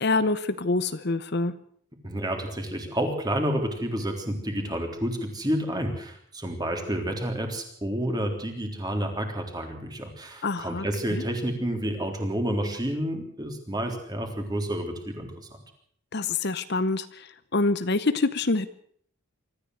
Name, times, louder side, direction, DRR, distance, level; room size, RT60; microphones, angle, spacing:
voice 1, 0.0-1.5 10.4-11.2 16.1-18.7, left 3 dB, 50° left, 13 dB, 0.8 m, -26 dB
voice 2, 2.0-15.5, equal, 20° right, 4 dB, 3.6 m, -30 dB
24.5 x 14.0 x 8.0 m, 0.62 s
head